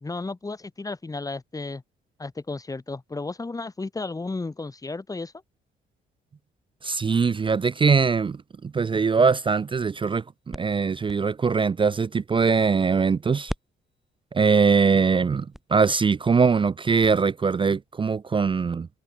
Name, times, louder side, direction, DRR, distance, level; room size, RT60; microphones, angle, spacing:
voice 1, 0.0-1.8 2.2-5.3, left 3 dB, 15° left, 1.3 m, -33 dB
voice 2, 6.8-13.5 14.3-18.9, right 5 dB, 25° right, 0.5 m, -22 dB
sound 1, 9.5-13.1 13.5-17.1, equal, ahead, 7.8 m, -43 dB
cardioid pair, 90°, 20 cm